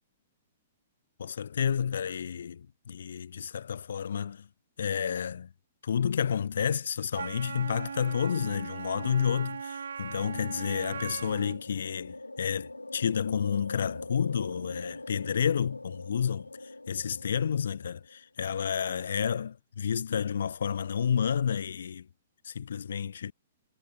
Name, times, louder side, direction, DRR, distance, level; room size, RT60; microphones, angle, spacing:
voice 1, 1.2-4.5 4.8-5.5 5.8-22.1 22.4-23.3, left 7 dB, 65° left, 0.4 m, -30 dB
Wind instrument woodwind instrument, 7.1-11.6, right 6 dB, 70° right, 2.3 m, -39 dB
sound 1, 10.6-18.2, left 2 dB, 85° left, 1.5 m, -43 dB
figure-of-eight pair, 115°, 0 cm